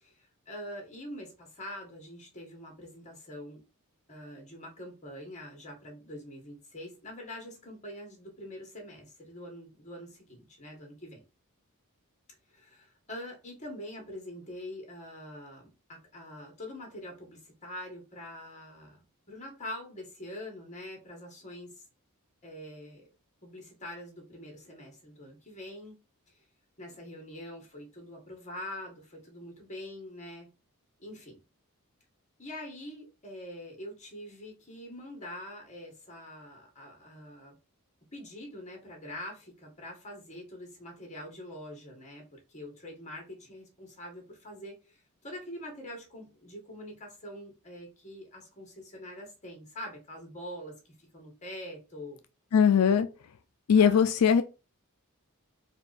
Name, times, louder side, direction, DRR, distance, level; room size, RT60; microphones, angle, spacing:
voice 1, 0.0-3.6 4.1-11.2 12.5-21.8 22.4-23.0 23.4-26.0 26.8-30.5 31.0-31.4 32.4-37.6 38.1-45.0 45.2-52.2 53.8-54.0, left 1 dB, 30° left, 1.7 m, -44 dB
voice 2, 52.5-53.1 53.7-54.4, left 7 dB, 85° left, 0.4 m, -20 dB
4.4 x 2.6 x 4.0 m
head